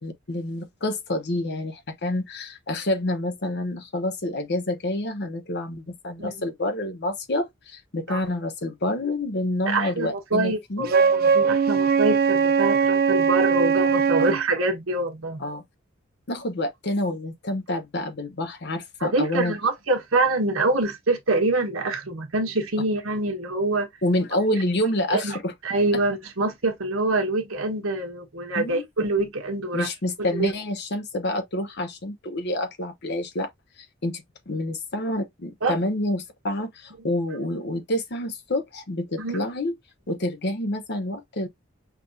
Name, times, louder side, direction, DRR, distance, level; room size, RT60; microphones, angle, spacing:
voice 1, 0.0-10.9 14.2-14.3 15.4-15.6 16.3-19.6 24.0-25.5 28.5-28.9 29.7-33.5 34.0-39.7 40.1-41.5, left 1 dB, 55° left, 1.0 m, -28 dB
voice 2, 9.6-15.4 19.0-23.9 25.1-25.4 25.6-29.9 30.4-30.5 35.6-35.8 39.2-39.5, right 2 dB, 85° right, 1.3 m, -25 dB
Wind instrument woodwind instrument, 10.9-14.4, right 6 dB, 50° right, 0.4 m, -20 dB
5.9 x 2.5 x 2.7 m
head